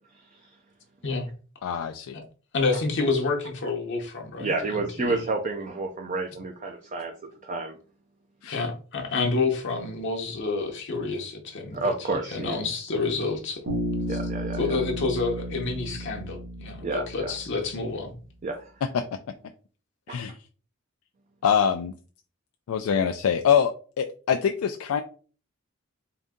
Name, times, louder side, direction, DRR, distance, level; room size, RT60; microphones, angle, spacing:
voice 1, 0.1-0.6 4.4-7.1 7.4-7.8 11.7-12.6 14.1-14.6 16.8-17.3 18.4-18.7 20.1-20.2, right 3 dB, 35° right, 3 dB, 0.5 m, -30 dB
voice 2, 1.6-2.2 8.4-8.6 20.1-20.3 21.4-21.9 22.7-25.0, left 7 dB, 75° left, 5 dB, 0.4 m, -24 dB
voice 3, 2.5-5.2 8.5-13.6 14.1-14.2 14.6-18.1, left 3 dB, 55° left, 1 dB, 0.8 m, -29 dB
Bass guitar, 13.7-17.7, equal, 75° right, 1.5 m, -33 dB
3.8 x 2.6 x 3.6 m, 0.39 s
head